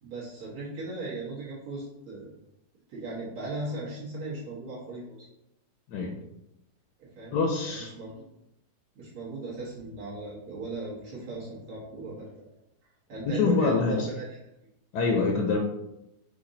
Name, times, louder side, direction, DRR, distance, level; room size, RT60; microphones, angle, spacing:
voice 1, 0.0-2.3 2.9-5.2 7.0-7.4 7.6-8.2 9.0-12.5 13.1-14.3, right 2 dB, 55° right, -8 dB, 1.7 m, -37 dB
voice 2, 7.3-7.9 13.2-14.1 14.9-15.6, left 4 dB, 75° left, 2 dB, 1.1 m, -25 dB
5.0 x 2.6 x 3.8 m, 0.85 s
omnidirectional pair, 2.0 m